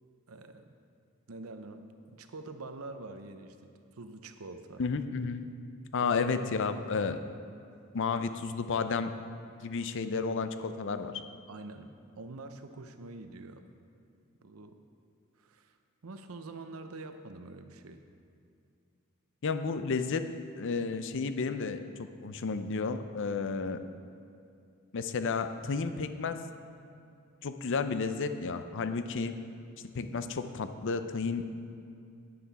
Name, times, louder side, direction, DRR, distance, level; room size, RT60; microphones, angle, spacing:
voice 1, 0.3-0.7 1.3-3.6 3.9-4.8 6.0-6.1 11.5-11.9 12.2-13.6 14.4-14.8 15.4-15.8 16.0-18.0 29.3-29.4, right 3 dB, 80° right, 8 dB, 0.7 m, -45 dB
voice 2, 4.8-5.5 5.9-7.2 7.9-9.1 9.6-11.1 19.4-20.2 20.6-23.8 24.9-26.4 27.4-29.3 29.9-31.5, left 4 dB, 60° left, 10 dB, 0.5 m, -32 dB
11.5 x 9.4 x 4.1 m, 2.5 s
head